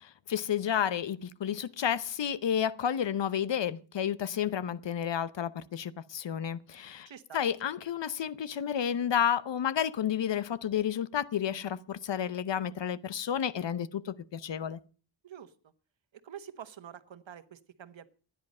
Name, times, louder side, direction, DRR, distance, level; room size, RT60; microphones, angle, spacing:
voice 1, 0.3-7.1 7.3-14.8, left 9 dB, 70° left, 0.9 m, -31 dB
voice 2, 7.0-7.4 15.2-15.5 16.2-18.1, right 9 dB, 75° right, 1.3 m, -47 dB
15.5 x 10.5 x 5.4 m
wide cardioid pair, 95°, 46 cm